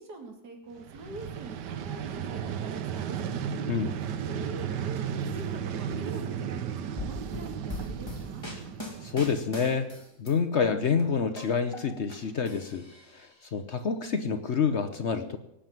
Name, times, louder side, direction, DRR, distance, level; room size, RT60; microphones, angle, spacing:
voice 1, 0.0-3.3 4.2-5.1 5.3-8.5, right 2 dB, 70° right, 2 dB, 3.0 m, -44 dB
Vehicle, 0.8-9.7, right 8 dB, 85° right, 1.5 m, -34 dB
sound 1, 7.0-10.3 10.6-12.2 12.5-13.3, left 2 dB, 15° left, 3.5 m, -40 dB
voice 2, 9.0-9.9 10.2-12.9 13.5-15.4, left 6 dB, 50° left, 9 dB, 0.9 m, -27 dB
18.5 x 7.6 x 9.2 m, 0.83 s
omnidirectional pair, 1.8 m